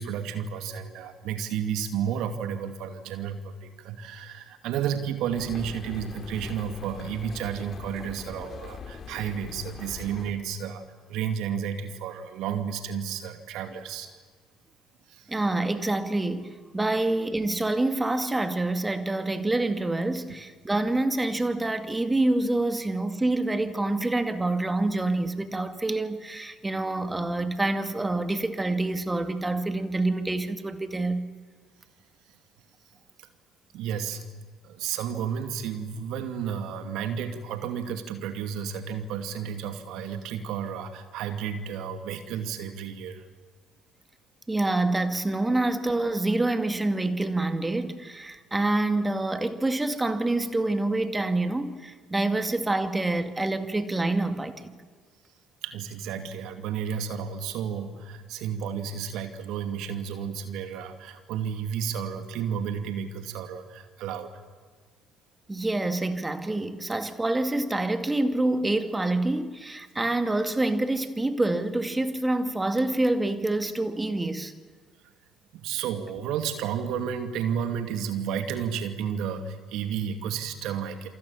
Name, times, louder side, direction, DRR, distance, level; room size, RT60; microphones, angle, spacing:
voice 1, 0.0-10.8 11.1-14.1 15.1-15.3 33.7-34.3 34.6-43.2 55.6-64.3 75.5-81.1, right 8 dB, 65° right, 2.4 m, -32 dB
sound 1, 5.3-10.3, left 6 dB, 40° left, 3.3 m, -42 dB
voice 2, 15.3-31.2 44.5-54.8 65.5-74.5, right 2 dB, 15° right, 2.3 m, -27 dB
28.5 x 24.5 x 7.2 m
hypercardioid pair, 55°, 0 cm